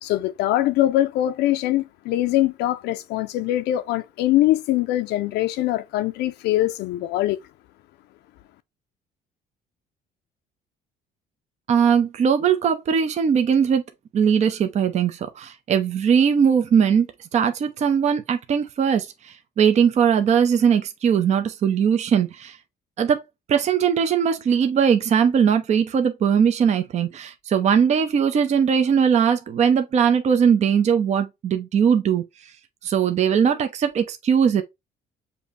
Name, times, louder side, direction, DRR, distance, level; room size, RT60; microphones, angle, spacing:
voice 1, 0.0-7.4, left 14 dB, 80° left, 0.5 m, -22 dB
voice 2, 11.7-13.8 14.1-17.1 17.3-22.6 23.0-23.2 23.5-32.2 32.8-34.6, right 7 dB, 45° right, 0.6 m, -20 dB
6.9 x 2.7 x 2.5 m
cardioid pair, 110°, 17 cm